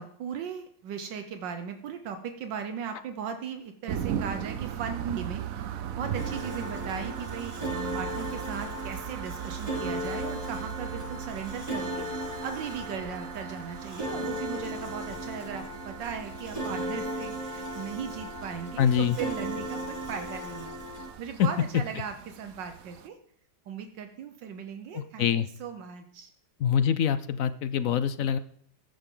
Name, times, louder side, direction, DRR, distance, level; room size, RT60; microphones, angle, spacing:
voice 1, 0.0-7.5 7.9-20.7 21.2-23.2 23.7-25.3 25.6-26.3, right 7 dB, 80° right, 7 dB, 1.6 m, -38 dB
sound 1, 3.9-23.1, right 9 dB, 60° right, 1.0 m, -39 dB
sound 2, 6.1-21.1, right 1 dB, 25° right, 5.5 m, -36 dB
voice 2, 18.8-19.2 21.4-21.5 24.9-25.5 26.6-28.4, left 8 dB, 65° left, 13 dB, 0.9 m, -25 dB
15.0 x 10.5 x 3.9 m, 0.63 s
omnidirectional pair, 1.9 m